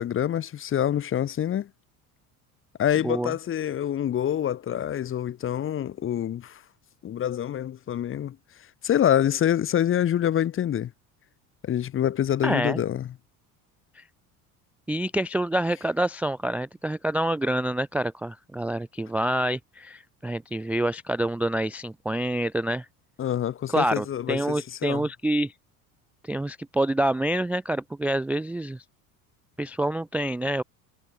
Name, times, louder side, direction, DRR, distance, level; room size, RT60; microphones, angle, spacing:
voice 1, 0.0-1.7 2.8-6.6 7.0-8.4 8.8-10.9 11.6-13.1 23.2-25.1, left 10 dB, 30° left, 0.7 m, -26 dB
voice 2, 12.4-12.8 14.0-14.1 14.9-22.9 23.7-25.5 26.2-28.8 29.6-30.6, right 1 dB, 5° right, 0.4 m, -27 dB
hypercardioid pair, 65°, 44 cm